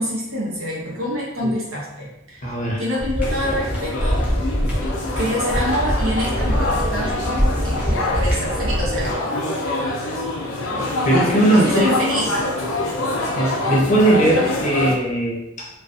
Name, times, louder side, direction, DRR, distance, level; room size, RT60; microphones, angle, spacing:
voice 1, 0.0-4.2 5.2-9.2 11.1-12.3, equal, 90° right, -5 dB, 0.9 m, -26 dB
voice 2, 2.4-2.8 10.7-12.0 13.4-15.7, right 1 dB, 35° left, -3 dB, 0.6 m, -19 dB
sound 1, 3.0-9.1, equal, 5° right, 0.5 m, -24 dB
sound 2, 3.2-14.9, left 2 dB, 85° left, 0.4 m, -25 dB
2.4 x 2.3 x 2.4 m, 0.91 s
head